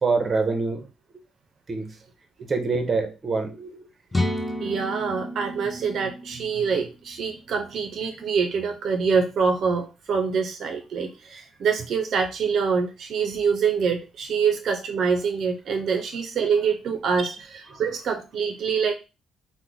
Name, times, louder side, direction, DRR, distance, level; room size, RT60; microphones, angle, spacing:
voice 1, 0.0-0.9 1.7-1.9 2.5-3.8 17.2-17.3 17.7-17.8, right 4 dB, 35° right, 6 dB, 0.7 m, -25 dB
sound 1, 4.1-7.9, left 1 dB, 10° left, 0.5 m, -31 dB
voice 2, 4.6-18.9, right 6 dB, 65° right, 4 dB, 0.4 m, -25 dB
2.9 x 2.0 x 3.6 m, 0.29 s
cardioid pair, 90°, 0 cm